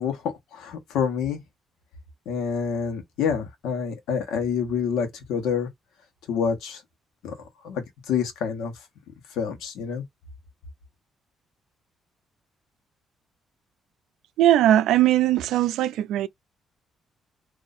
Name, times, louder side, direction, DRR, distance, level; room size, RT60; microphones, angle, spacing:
voice 1, 0.0-1.4 2.3-5.7 6.3-6.8 7.2-7.4 7.6-8.7 9.4-10.0, left 6 dB, 90° left, 1.2 m, -27 dB
voice 2, 14.4-16.3, right 12 dB, 85° right, 0.4 m, -20 dB
2.7 x 2.6 x 4.1 m
cardioid pair, 90°, 0 cm